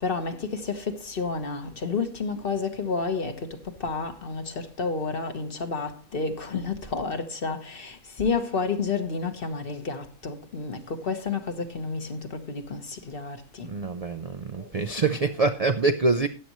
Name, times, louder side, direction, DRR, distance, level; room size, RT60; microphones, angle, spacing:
voice 1, 0.0-13.7 14.6-14.9, left 4 dB, 45° left, 1.3 m, -30 dB
voice 2, 13.6-16.3, right 3 dB, 50° right, 0.4 m, -25 dB
13.5 x 9.4 x 3.0 m
omnidirectional pair, 1.4 m